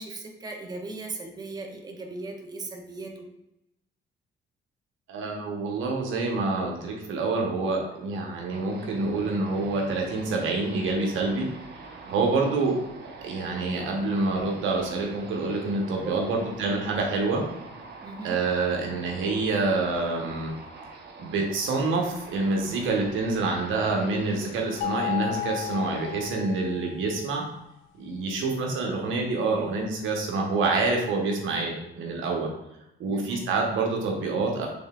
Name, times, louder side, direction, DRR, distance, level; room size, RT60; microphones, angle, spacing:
voice 1, 0.0-3.3 12.1-12.4 16.0-16.5 18.0-18.4 33.1-33.4, right 3 dB, 20° right, 2 dB, 0.6 m, -38 dB
voice 2, 5.1-11.5 12.1-12.8 13.2-17.4 18.2-20.5 21.2-27.4 28.0-32.5 33.0-34.7, right 3 dB, 80° right, 0 dB, 1.0 m, -27 dB
sound 1, 8.5-26.3, right 3 dB, 55° right, 0.9 m, -45 dB
sound 2, 24.8-27.0, left 12 dB, 90° left, 0.5 m, -33 dB
5.4 x 3.8 x 2.4 m, 0.87 s
cardioid pair, 90°, 20 cm